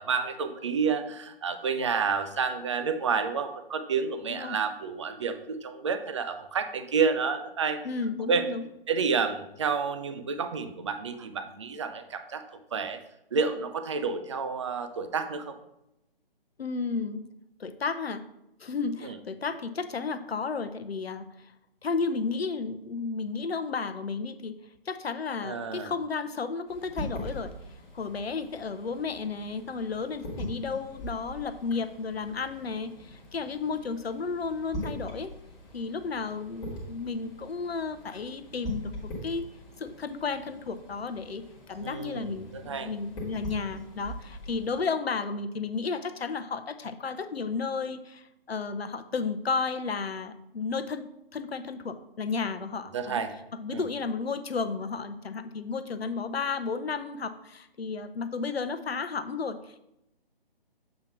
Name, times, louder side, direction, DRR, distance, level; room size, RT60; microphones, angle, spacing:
voice 1, 0.0-7.8 8.3-8.4 8.9-12.4 12.7-13.0 13.3-15.5 19.0-19.2 25.4-25.9 41.8-42.9 52.9-53.3 53.7-53.8, right 5 dB, 30° right, 9 dB, 0.5 m, -29 dB
voice 2, 7.8-8.6 16.6-17.2 17.6-18.2 18.6-21.5 21.8-24.6 24.9-27.5 27.9-35.3 35.7-39.5 39.8-41.4 41.7-53.2 53.6-59.8, left 4 dB, 90° left, 11 dB, 0.7 m, -33 dB
sound 1, 26.7-44.9, equal, 10° left, 1.4 m, -42 dB
7.5 x 3.0 x 5.7 m, 0.86 s
figure-of-eight pair, 150°, 30 cm